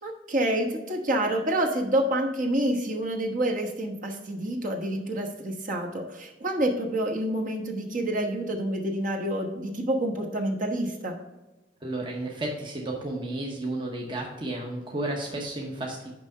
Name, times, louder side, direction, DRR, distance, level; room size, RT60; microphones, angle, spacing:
voice 1, 0.0-11.2, right 1 dB, 45° right, 2 dB, 1.2 m, -28 dB
voice 2, 11.8-16.1, right 2 dB, 25° right, -1 dB, 0.9 m, -32 dB
6.0 x 5.4 x 5.5 m, 1.1 s
head